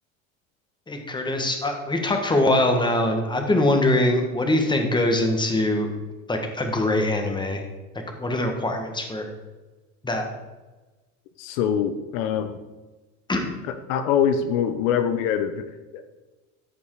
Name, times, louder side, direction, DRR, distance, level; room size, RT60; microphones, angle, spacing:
voice 1, 0.9-5.9 6.3-7.6 8.2-9.3 10.0-10.3 13.3-13.5, left 1 dB, 10° left, 4 dB, 1.7 m, -23 dB
voice 2, 11.4-12.6 13.7-15.6 15.9-16.0, left 8 dB, 70° left, 9 dB, 1.0 m, -24 dB
14.0 x 5.4 x 4.9 m, 1.2 s
supercardioid pair, 110°, 41 cm